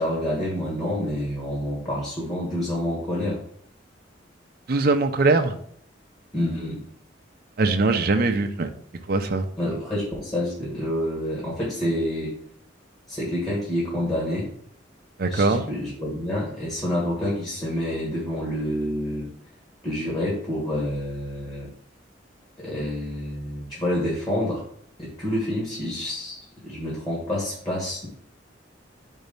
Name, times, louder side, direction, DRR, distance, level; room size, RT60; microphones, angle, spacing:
voice 1, 0.0-3.4 6.3-6.8 9.6-12.3 13.1-14.5 15.3-19.3 19.8-21.7 22.6-24.6 25.0-28.1, left 1 dB, 20° left, -5 dB, 1.5 m, -28 dB
voice 2, 4.7-5.5 7.6-8.7 9.1-9.4 15.2-15.6, right 3 dB, 55° right, 7 dB, 0.5 m, -21 dB
4.6 x 4.1 x 5.3 m, 0.64 s
head